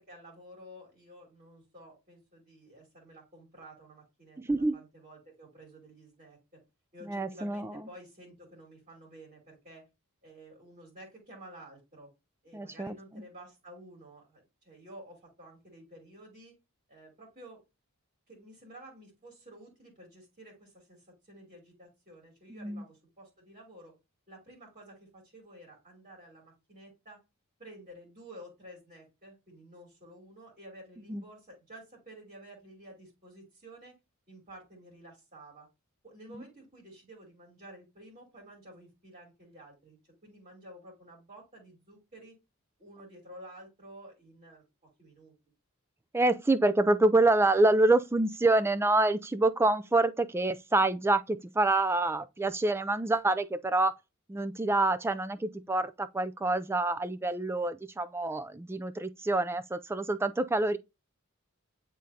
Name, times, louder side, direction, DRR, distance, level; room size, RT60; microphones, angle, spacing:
voice 1, 0.0-6.6 6.9-9.9 10.2-12.1 12.4-16.6 16.9-17.6 18.3-23.9 24.3-27.2 27.6-34.0 34.3-35.7 36.0-42.4 42.8-44.6 45.0-45.3, right 1 dB, 35° right, 2.6 m, -52 dB
voice 2, 4.4-4.8 7.0-7.8 12.5-12.9 22.5-22.8 31.1-31.2 36.3-36.4 46.1-53.9 54.3-60.8, right 2 dB, 10° right, 0.3 m, -27 dB
9.4 x 3.8 x 2.8 m
head